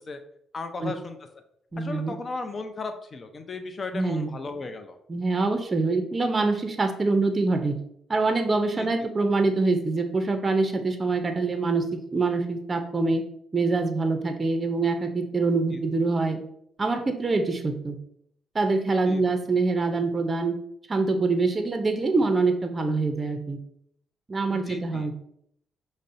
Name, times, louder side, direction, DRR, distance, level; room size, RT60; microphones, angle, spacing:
voice 1, 0.5-1.2 1.8-5.0 8.7-8.9 15.7-15.8 19.1-19.2 24.5-25.1, left 3 dB, 40° left, 7 dB, 0.5 m, -35 dB
voice 2, 1.7-2.1 3.9-4.3 5.1-7.8 8.1-13.2 13.5-16.4 16.8-18.0 18.5-20.6 20.9-23.6 24.3-25.1, right 3 dB, 35° right, 6 dB, 0.5 m, -25 dB
5.2 x 2.0 x 2.5 m, 0.72 s
supercardioid pair, 60°, 0 cm